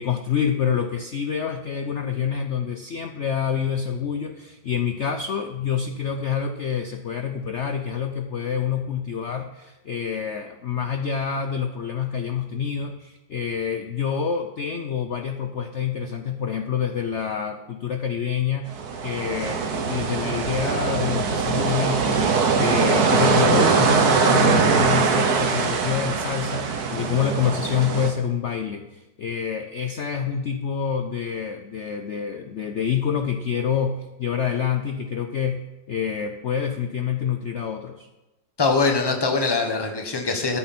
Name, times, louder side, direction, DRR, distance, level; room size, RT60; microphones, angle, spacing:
voice 1, 0.0-38.1, left 7 dB, 70° left, 6 dB, 0.6 m, -27 dB
sound 1, 18.7-28.1, right 5 dB, 60° right, 1.6 m, -22 dB
voice 2, 38.6-40.6, left 4 dB, 15° left, 3 dB, 1.1 m, -22 dB
13.5 x 9.5 x 4.3 m, 1.0 s
omnidirectional pair, 2.0 m